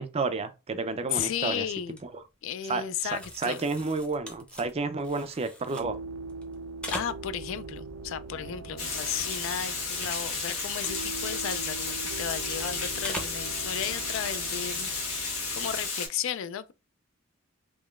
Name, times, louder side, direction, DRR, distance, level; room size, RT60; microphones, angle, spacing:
voice 1, 0.0-1.6 2.7-6.0, right 3 dB, 30° right, 0.4 m, -31 dB
sound 1, 1.0-1.3 1.6-2.0 2.9-5.9 6.3-7.6 7.9-9.3 9.7-12.7 13.0-13.5 13.9-14.0 15.6-15.8, equal, 5° left, 0.6 m, -43 dB
voice 2, 1.1-2.0 2.4-3.7 6.9-16.7, left 9 dB, 65° left, 0.3 m, -34 dB
sound 2, 5.8-15.9, right 3 dB, 85° right, 0.5 m, -42 dB
Water, 8.8-16.1, left 4 dB, 85° left, 1.3 m, -33 dB
3.6 x 3.1 x 2.3 m
head